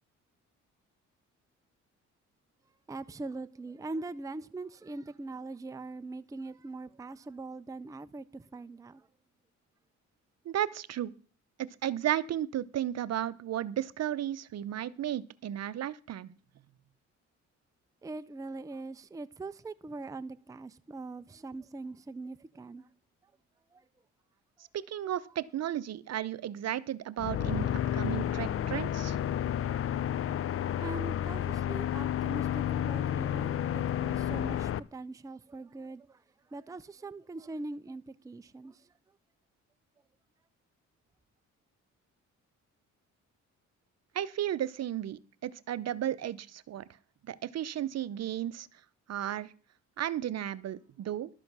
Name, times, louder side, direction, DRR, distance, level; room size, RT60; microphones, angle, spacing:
voice 1, 2.9-9.1 18.0-22.9 23.7-23.9 30.8-36.2 36.5-38.8, right 3 dB, 10° right, 0.5 m, -42 dB
voice 2, 10.4-11.1 11.6-16.3 24.7-29.2 44.1-46.8 47.2-48.7 49.1-49.5 50.0-51.3, right 11 dB, 55° right, 0.8 m, -34 dB
sound 1, 27.2-34.8, left 10 dB, 45° left, 0.6 m, -31 dB
12.5 x 7.6 x 6.1 m
cardioid pair, 90°, 30 cm